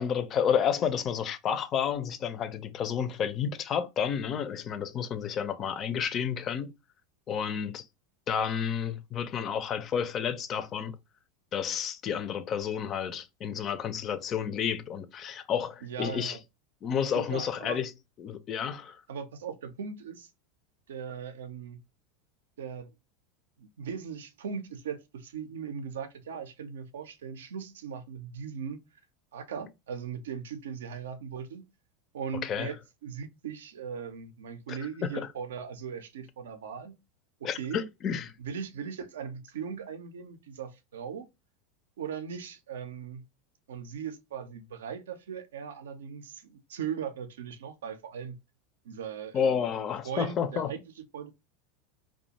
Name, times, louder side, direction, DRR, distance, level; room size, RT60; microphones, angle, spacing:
voice 1, 0.0-6.7 7.3-7.8 8.3-11.0 11.5-16.4 16.8-17.9 18.2-19.0 32.4-32.7 34.7-35.3 37.4-38.3 49.3-50.7, left 7 dB, 40° left, 0.4 m, -30 dB
voice 2, 15.8-16.4 17.1-17.8 19.1-20.3 20.9-21.8 22.6-22.9 23.6-28.8 29.3-31.7 32.1-32.8 33.0-37.0 37.4-37.8 38.4-41.3 42.0-43.2 43.7-48.4 48.8-49.7 50.0-51.3, right 7 dB, 80° right, 0.4 m, -39 dB
2.4 x 2.2 x 2.8 m
hypercardioid pair, 90°, 0 cm